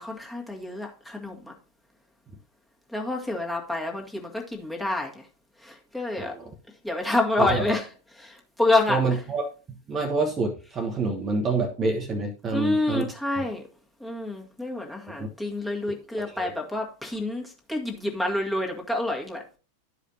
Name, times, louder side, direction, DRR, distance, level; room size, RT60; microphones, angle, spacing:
voice 1, 0.0-1.5 2.9-5.2 5.6-6.3 6.8-7.9 8.2-9.0 12.5-13.6 14.0-19.4, left 2 dB, 5° left, 1.6 m, -28 dB
voice 2, 6.2-6.5 7.4-7.8 8.9-13.5 15.2-15.3 15.9-16.0 16.3-16.5, right 3 dB, 25° right, 1.0 m, -28 dB
12.0 x 5.0 x 2.8 m
figure-of-eight pair, 90°, 0 cm